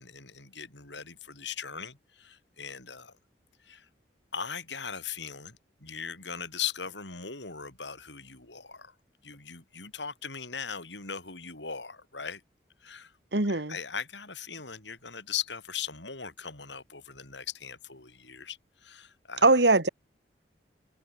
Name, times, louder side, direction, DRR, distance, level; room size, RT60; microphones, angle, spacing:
voice 1, 0.0-3.1 3.6-3.9 4.3-8.9 9.2-12.4 12.8-13.1 13.5-19.4, left 7 dB, 80° left, 7.8 m, -39 dB
voice 2, 13.3-13.8 19.4-19.9, right 2 dB, 70° right, 2.2 m, -21 dB
open air
head